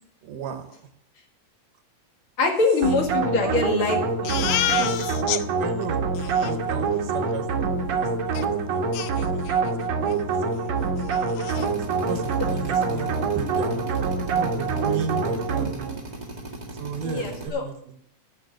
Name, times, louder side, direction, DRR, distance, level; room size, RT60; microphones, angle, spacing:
voice 1, 0.2-0.8 3.4-4.0 5.6-7.5 7.8-10.9 11.7-15.9 16.7-17.9, right 6 dB, 75° right, 7 dB, 2.8 m, -35 dB
voice 2, 2.4-4.9 17.0-17.6, left 3 dB, 45° left, 2 dB, 2.6 m, -24 dB
sound 1, 2.8-16.0, right 4 dB, 60° right, 2.2 m, -25 dB
Crying sobbing, 4.2-5.4 5.8-5.9 6.1-6.5 8.3-8.4 8.9-9.7 10.1-10.2 10.6-10.7 11.0-11.7, left 13 dB, 80° left, 1.6 m, -29 dB
Drill, 11.5-17.5, right 2 dB, 25° right, 0.9 m, -38 dB
10.5 x 7.2 x 8.6 m, 0.69 s
omnidirectional pair, 3.8 m